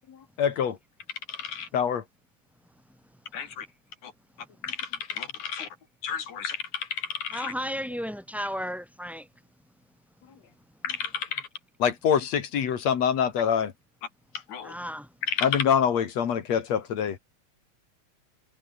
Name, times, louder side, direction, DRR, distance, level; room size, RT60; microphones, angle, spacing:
voice 1, 0.4-0.8 1.7-2.0 11.8-13.7 15.4-17.2, left 8 dB, 65° left, 3.2 m, -24 dB
voice 2, 1.3-1.7 3.3-3.7 4.0-4.1 4.6-5.7 6.0-7.5 10.8-11.5 14.5-14.8 15.3-15.6, left 7 dB, 85° left, 4.1 m, -32 dB
voice 3, 7.3-9.3 14.6-15.1, equal, ahead, 5.6 m, -33 dB
omnidirectional pair, 3.3 m